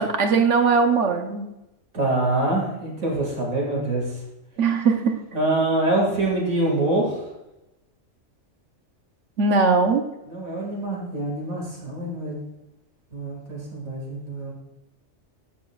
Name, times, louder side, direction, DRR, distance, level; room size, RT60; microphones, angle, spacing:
voice 1, 0.0-1.5 4.6-5.2 9.4-10.1, right 4 dB, 65° right, 5 dB, 1.1 m, -20 dB
voice 2, 1.9-4.0 5.3-7.2 10.3-12.4 13.1-14.5, right 2 dB, 90° right, -2 dB, 2.7 m, -25 dB
11.0 x 8.5 x 2.4 m, 0.95 s
omnidirectional pair, 1.4 m